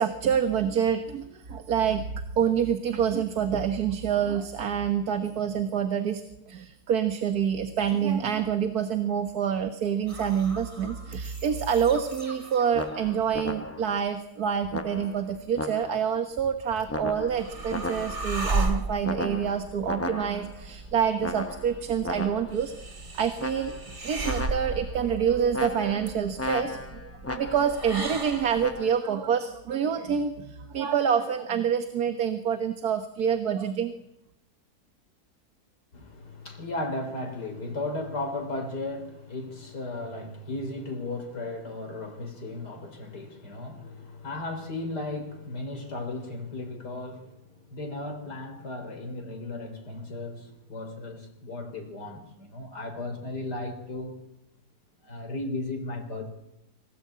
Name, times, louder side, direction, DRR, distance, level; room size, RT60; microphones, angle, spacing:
voice 1, 0.0-2.0 2.4-6.2 6.5-22.7 23.1-23.7 24.0-33.9, right 8 dB, 70° right, 1.8 m, -27 dB
sound 1, 10.1-14.1 14.4-16.8, right 1 dB, 20° right, 3.1 m, -48 dB
sound 2, 12.7-14.0 14.7-16.2 16.9-18.4 19.0-20.6 21.2-22.6 23.4-24.0 24.2-25.0 25.5-27.8 28.6-28.9, left 2 dB, 15° left, 0.5 m, -35 dB
sound 3, 16.8-28.8, right 2 dB, 45° right, 2.5 m, -35 dB
voice 2, 35.9-54.2 55.0-56.3, left 2 dB, 80° left, 4.4 m, -35 dB
25.0 x 17.5 x 8.6 m
omnidirectional pair, 1.7 m